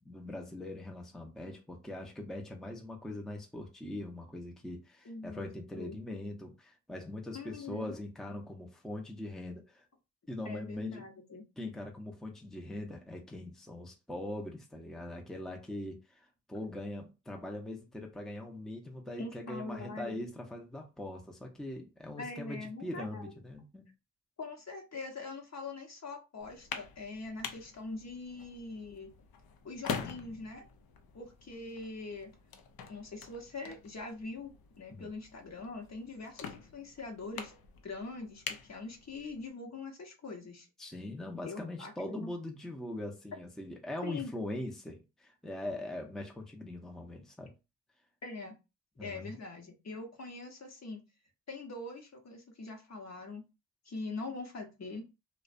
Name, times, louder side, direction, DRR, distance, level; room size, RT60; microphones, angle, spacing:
voice 1, 0.0-9.9 10.3-11.0 11.6-23.8 34.9-35.1 40.8-47.5 49.0-49.4, left 1 dB, ahead, 0.6 m, -41 dB
voice 2, 5.0-6.0 7.3-8.0 10.4-11.4 19.2-20.3 22.2-23.3 24.4-29.1 29.6-30.6 31.1-32.3 32.9-37.5 37.8-40.7 41.5-42.3 44.0-44.3 48.2-48.5 49.0-51.0 51.5-53.4 53.8-55.0, left 3 dB, 45° left, 0.8 m, -43 dB
sound 1, 26.4-39.5, left 6 dB, 70° left, 0.5 m, -45 dB
2.4 x 2.1 x 2.4 m
supercardioid pair, 50°, 38 cm